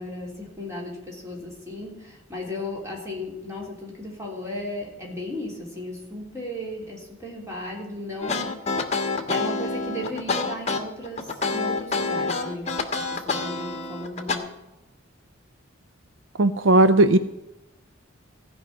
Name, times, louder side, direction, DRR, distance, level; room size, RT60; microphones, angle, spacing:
voice 1, 0.0-8.7 9.3-14.6, left 1 dB, 15° right, -2 dB, 3.3 m, -35 dB
sound 1, 8.2-14.4, left 3 dB, 30° left, 1.3 m, -27 dB
voice 2, 16.4-17.2, right 2 dB, 65° right, 12 dB, 0.5 m, -16 dB
15.5 x 5.5 x 8.5 m, 0.96 s
head